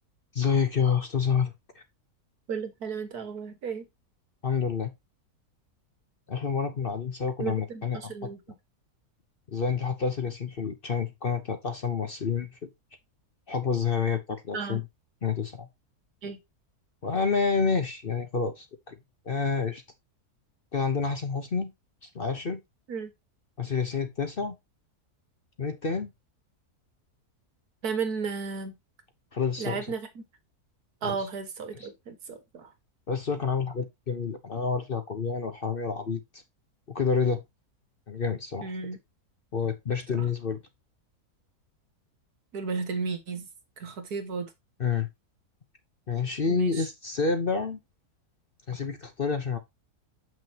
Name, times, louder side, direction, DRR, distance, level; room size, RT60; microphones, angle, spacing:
voice 1, 0.3-1.8 4.4-4.9 6.3-8.0 9.5-12.7 13.5-14.8 15.2-15.7 17.0-18.9 19.3-19.8 20.7-21.7 22.0-22.6 23.6-24.6 25.6-26.1 29.3-29.9 31.0-31.2 31.7-31.9 33.1-36.4 36.9-37.4 38.1-38.7 39.5-40.6 44.8-45.1 46.1-47.8 48.7-49.6, left 5 dB, 40° left, 0.9 m, -28 dB
voice 2, 2.5-3.9 7.4-8.4 14.5-14.8 16.2-16.4 22.9-23.1 27.8-28.7 29.6-30.2 31.0-32.7 38.6-39.0 40.2-40.3 42.5-43.5 43.8-44.5 46.5-46.9, right 5 dB, 70° right, 2.0 m, -34 dB
7.5 x 6.1 x 2.9 m
omnidirectional pair, 1.7 m